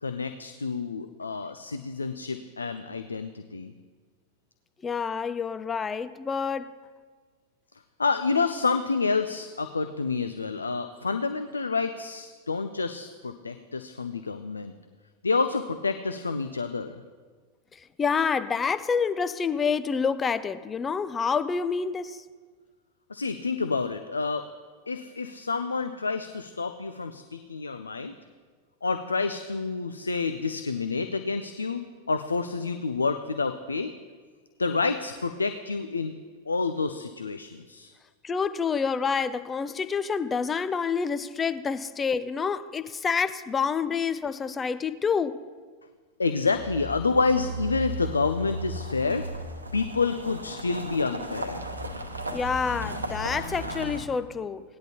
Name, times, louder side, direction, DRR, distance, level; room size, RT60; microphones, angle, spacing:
voice 1, 0.0-3.7 8.0-14.7 15.2-17.0 23.1-24.5 24.9-28.1 28.8-31.8 32.1-33.9 34.6-36.1 36.5-37.9 46.2-49.3 49.7-51.7, left 4 dB, 75° left, 0.4 m, -28 dB
voice 2, 4.8-6.7 18.0-22.2 38.2-45.4 52.3-54.6, left 6 dB, 20° left, 0.4 m, -28 dB
sound 1, 46.5-54.0, right 1 dB, 80° right, 1.0 m, -35 dB
18.0 x 10.5 x 2.9 m
figure-of-eight pair, 90°, 0 cm